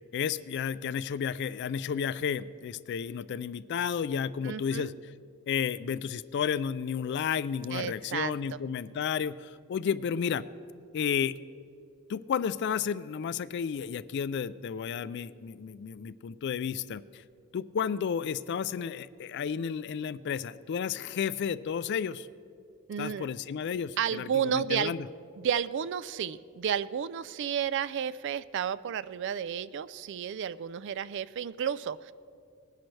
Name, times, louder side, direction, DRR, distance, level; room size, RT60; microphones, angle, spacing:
voice 1, 0.1-4.9 5.5-10.4 10.9-11.3 12.1-17.2 17.5-22.3 23.0-25.1, left 7 dB, 55° left, 16 dB, 0.3 m, -32 dB
voice 2, 4.4-4.9 7.7-8.6 22.9-23.3 24.0-24.9 25.4-32.1, right 8 dB, 55° right, 17 dB, 0.3 m, -32 dB
19.5 x 10.5 x 3.2 m, 2.3 s
head